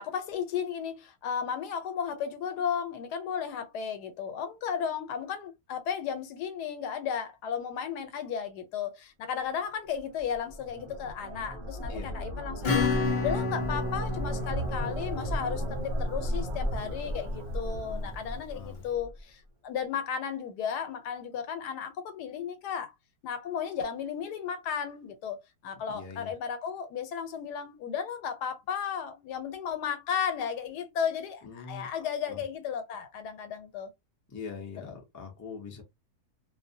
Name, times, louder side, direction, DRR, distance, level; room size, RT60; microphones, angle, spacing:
voice 1, 0.0-22.9 23.2-33.9 34.8-34.9, left 7 dB, 85° left, 1.2 m, -34 dB
sound 1, 10.0-19.2, equal, 50° right, 0.7 m, -35 dB
Acoustic guitar / Strum, 12.6-16.9, left 4 dB, 45° left, 0.9 m, -31 dB
voice 2, 17.6-18.1 18.5-18.8 25.9-26.3 31.4-31.9 32.3-32.4 34.3-35.8, left 5 dB, 30° left, 0.3 m, -43 dB
2.6 x 2.0 x 2.6 m
omnidirectional pair, 1.7 m